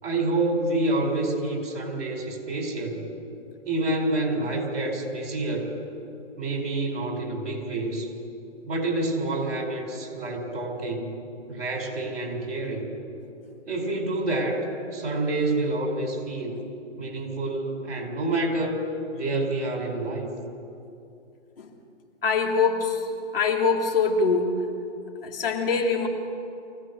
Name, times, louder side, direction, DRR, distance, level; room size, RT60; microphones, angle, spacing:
voice 1, 0.0-3.1 3.6-5.7 6.4-8.1 8.7-11.2 11.5-12.9 13.7-14.6 14.9-16.6 17.0-18.8 19.1-20.3, right 2 dB, 55° right, 2 dB, 5.1 m, -28 dB
voice 2, 22.2-23.0 23.3-24.5 25.2-26.1, left 5 dB, 50° left, 2 dB, 2.9 m, -23 dB
24.0 x 16.5 x 6.8 m, 2.6 s
hypercardioid pair, 160°, 36 cm